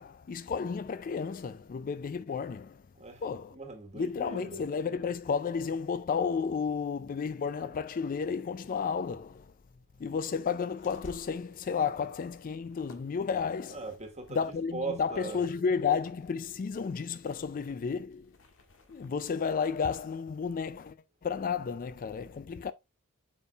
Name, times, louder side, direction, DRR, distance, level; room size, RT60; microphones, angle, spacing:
voice 1, 0.0-2.9 3.2-3.6 3.9-9.5 10.0-13.8 14.3-18.4 18.9-22.7, left 6 dB, 40° left, 0.3 m, -32 dB
voice 2, 2.9-4.7 13.7-15.5, right 3 dB, 30° right, 1.5 m, -40 dB
sound 1, 10.8-20.2, left 1 dB, 60° left, 1.7 m, -58 dB
8.4 x 5.4 x 2.4 m
head